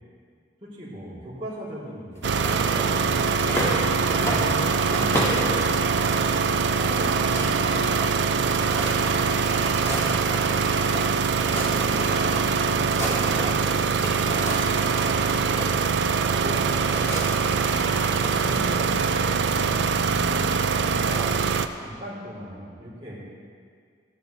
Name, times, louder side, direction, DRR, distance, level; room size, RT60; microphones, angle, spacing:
voice 1, 0.6-6.3 6.8-8.6 9.1-10.2 10.8-15.0 15.5-15.8 16.2-20.4 20.8-21.4 21.7-23.2, equal, 30° right, -11 dB, 3.5 m, -38 dB
sound 1, 2.2-3.8 4.1-5.5 5.9-6.4 6.7-6.8 7.0-11.0 11.3-12.4 12.7-13.6 13.9-15.7 16.5-18.3, equal, 15° left, 1.9 m, -32 dB
sound 2, 2.2-21.7, right 5 dB, 85° right, 0.5 m, -23 dB
16.5 x 11.0 x 3.4 m, 2.1 s
head